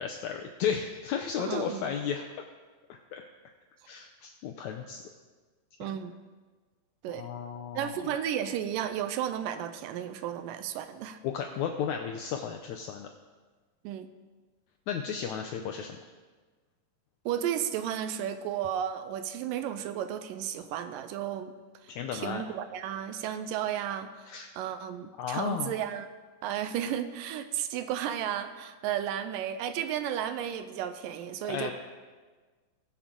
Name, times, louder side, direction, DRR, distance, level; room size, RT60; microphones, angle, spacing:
voice 1, 0.0-2.3 2.9-3.2 3.9-5.0 7.1-8.0 11.2-13.1 14.9-16.0 21.9-22.4 24.3-24.5 25.2-25.7 31.4-31.7, left 7 dB, 85° left, 3 dB, 1.6 m, -34 dB
voice 2, 1.4-1.9 5.8-6.2 7.0-7.3 7.8-11.2 13.8-14.1 17.3-21.5 21.8-24.1 24.6-26.1 26.4-31.7, right 10 dB, 80° right, 10 dB, 2.2 m, -33 dB
20.5 x 7.1 x 3.7 m, 1.4 s
omnidirectional pair, 4.0 m